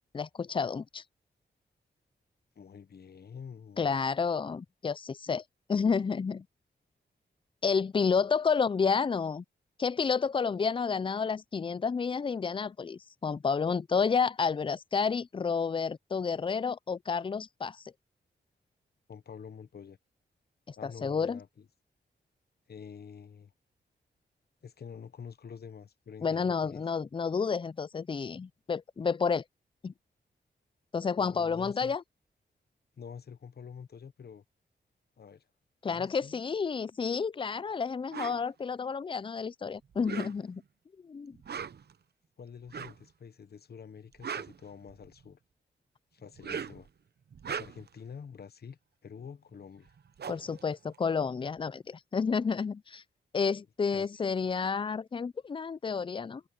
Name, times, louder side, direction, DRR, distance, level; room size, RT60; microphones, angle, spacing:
voice 1, 0.1-1.0 3.8-5.4 5.7-6.4 7.6-9.4 9.8-17.8 20.7-21.4 26.2-29.4 29.8-29.9 30.9-32.0 35.8-40.6 41.0-41.4 50.3-53.0 53.3-56.4, left 5 dB, 25° left, 0.4 m, -30 dB
voice 2, 2.5-3.9 19.1-20.0 20.8-21.7 22.7-23.5 24.6-26.8 31.2-32.0 33.0-34.4 35.2-35.4 35.9-36.4 42.4-45.4 46.1-46.9 47.6-50.0 53.9-54.1, left 6 dB, 60° left, 1.0 m, -47 dB
sound 1, 38.1-38.4 39.9-40.6 41.3-41.9 42.7-43.1 44.0-45.2 46.3-46.9 47.3-48.0 49.5-49.6 49.9-51.6, right 7 dB, 60° right, 0.9 m, -40 dB
cardioid pair, 75°, 19 cm